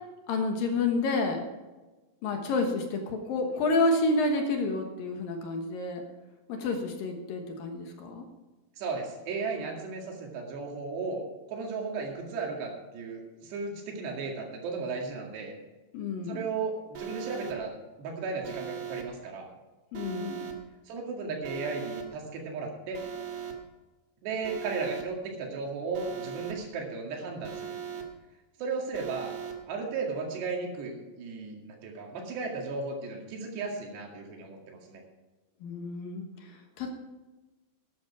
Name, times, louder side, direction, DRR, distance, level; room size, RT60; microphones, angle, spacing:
voice 1, 0.3-1.4 2.2-6.0 6.5-8.3 15.9-16.4 19.9-20.6 35.6-36.9, left 2 dB, 65° left, 4 dB, 2.7 m, -29 dB
voice 2, 8.8-11.2 11.5-15.6 16.3-17.7 18.0-19.5 20.9-23.0 24.2-28.0 28.6-29.3 29.7-35.0, right 4 dB, 80° right, 1 dB, 4.3 m, -35 dB
Alarm, 16.9-17.5 18.4-19.0 19.9-20.5 21.4-22.0 22.9-23.5 24.4-25.0 25.9-26.5 27.4-28.0 28.9-29.5, right 8 dB, 60° right, 1.7 m, -39 dB
12.5 x 10.5 x 4.9 m, 1.2 s
omnidirectional pair, 4.8 m